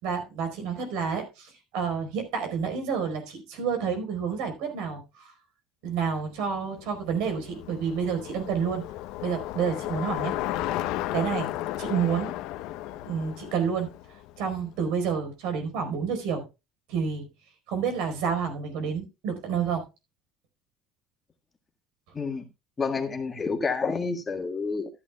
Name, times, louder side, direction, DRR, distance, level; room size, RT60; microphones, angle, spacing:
voice 1, 0.0-5.3 5.8-8.8 9.2-10.3 11.1-11.5 11.8-12.3 13.0-13.9 14.4-16.4 16.9-17.3 17.7-19.8, right 6 dB, 75° right, 4.5 m, -29 dB
Bicycle, 6.5-14.8, left 14 dB, 70° left, 0.9 m, -34 dB
voice 2, 22.8-24.9, left 4 dB, 20° left, 1.7 m, -29 dB
14.5 x 11.0 x 2.3 m
cardioid pair, 125°, 0 cm